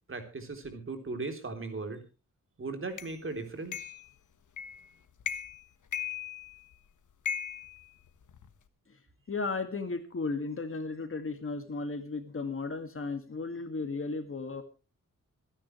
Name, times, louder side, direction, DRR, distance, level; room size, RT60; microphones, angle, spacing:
voice 1, 0.1-2.0 2.6-3.9, right 3 dB, 40° right, 5 dB, 3.5 m, -38 dB
sound 1, 3.0-3.1 3.7-4.1 4.6-4.9 5.2-5.6 5.9-6.7 7.3-8.5, left 8 dB, 70° left, 1.4 m, -37 dB
voice 2, 9.3-14.6, left 3 dB, 40° left, 8 dB, 2.0 m, -35 dB
26.5 x 10.0 x 3.2 m, 0.32 s
wide cardioid pair, 120°, 31 cm